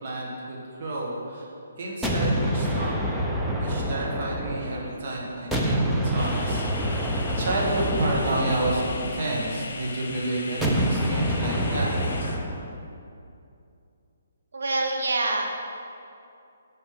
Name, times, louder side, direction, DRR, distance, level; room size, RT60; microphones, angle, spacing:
voice 1, 0.0-1.5 1.8-3.1 3.5-7.0 7.4-11.9, right 1 dB, 45° right, -3 dB, 1.7 m, -30 dB
sound 1, 2.0-5.0 5.5-9.8 10.6-12.7, equal, 5° right, 0.6 m, -27 dB
sound 2, 6.2-12.4, left 3 dB, 60° left, 1.2 m, -38 dB
voice 2, 14.5-15.4, right 2 dB, 75° right, 1 dB, 1.3 m, -25 dB
6.8 x 5.6 x 7.1 m, 2.6 s
hypercardioid pair, 160°, 0 cm